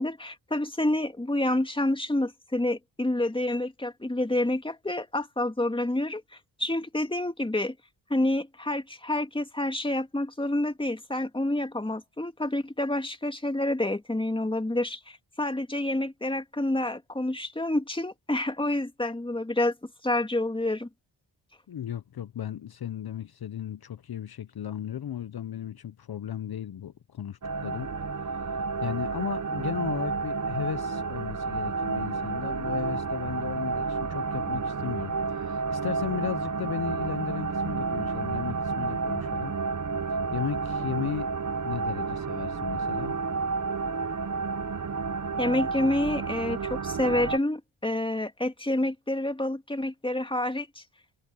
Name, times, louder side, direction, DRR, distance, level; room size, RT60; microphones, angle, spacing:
voice 1, 0.0-6.2 6.6-7.7 8.1-19.7 20.0-20.9 45.4-50.8, left 1 dB, 10° left, 2.2 m, -28 dB
voice 2, 21.7-27.9 28.8-39.5 40.3-41.3 41.6-43.2, left 9 dB, 55° left, 1.0 m, -35 dB
sound 1, 27.4-47.4, right 4 dB, 40° right, 1.3 m, -30 dB
cardioid pair, 55°, 44 cm